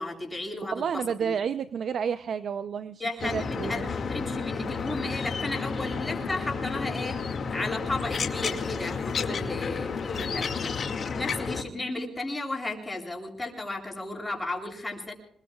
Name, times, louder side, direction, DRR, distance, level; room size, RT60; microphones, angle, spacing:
voice 1, 0.0-1.3 3.0-7.2 7.5-10.7 11.2-15.1, left 2 dB, 15° left, 0 dB, 7.9 m, -34 dB
voice 2, 0.7-3.9, right 7 dB, 60° right, 11 dB, 0.7 m, -31 dB
sound 1, 3.2-11.6, left 5 dB, 45° left, 2.2 m, -31 dB
27.5 x 22.0 x 2.4 m, 0.67 s
cardioid pair, 90°, 0 cm